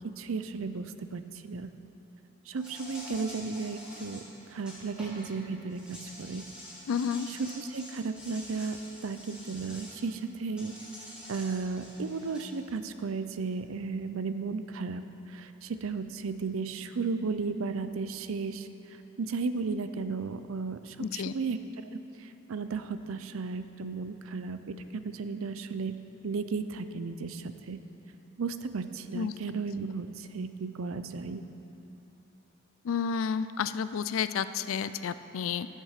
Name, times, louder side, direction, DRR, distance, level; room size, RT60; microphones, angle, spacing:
voice 1, 0.2-1.7 2.5-4.2 4.5-6.4 7.4-8.8 9.0-10.7 11.3-15.0 15.3-18.7 19.2-21.6 21.9-22.0 22.5-26.0 26.2-27.8 28.4-31.4, right 4 dB, 90° right, 10 dB, 0.5 m, -34 dB
Insect, 2.6-5.3 5.7-10.0 10.6-12.5, equal, 5° right, 2.1 m, -47 dB
voice 2, 6.9-7.3 21.0-21.3 29.1-29.3 32.8-35.7, left 7 dB, 85° left, 13 dB, 0.4 m, -31 dB
12.0 x 7.4 x 5.8 m, 3.0 s
head